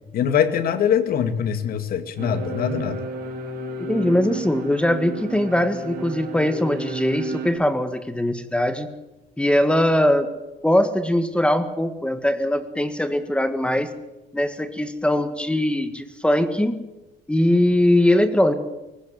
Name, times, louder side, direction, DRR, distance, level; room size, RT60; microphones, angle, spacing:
voice 1, 0.1-3.0, left 8 dB, 60° left, 9 dB, 2.4 m, -23 dB
sound 1, 2.2-7.5, right 2 dB, 65° right, 4.8 m, -32 dB
voice 2, 3.8-8.9 9.4-10.3 10.6-13.9 14.3-16.8 17.3-18.5, left 1 dB, 5° left, 10 dB, 1.7 m, -21 dB
21.5 x 19.5 x 8.0 m, 1.0 s
cardioid pair, 110°, 17 cm